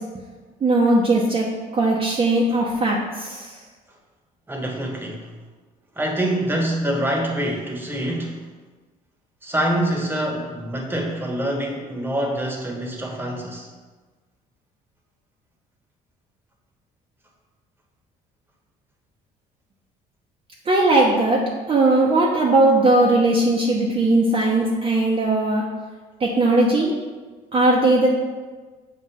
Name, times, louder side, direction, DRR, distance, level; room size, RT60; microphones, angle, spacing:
voice 1, 0.6-1.5 1.7-3.5 20.7-25.6 26.2-26.9 27.5-28.1, right 2 dB, 35° right, -3 dB, 0.8 m, -18 dB
voice 2, 4.5-5.3 5.9-8.4 9.4-13.7, right 1 dB, 10° right, 0 dB, 1.1 m, -25 dB
7.3 x 2.5 x 5.5 m, 1.3 s
cardioid pair, 110°, 17 cm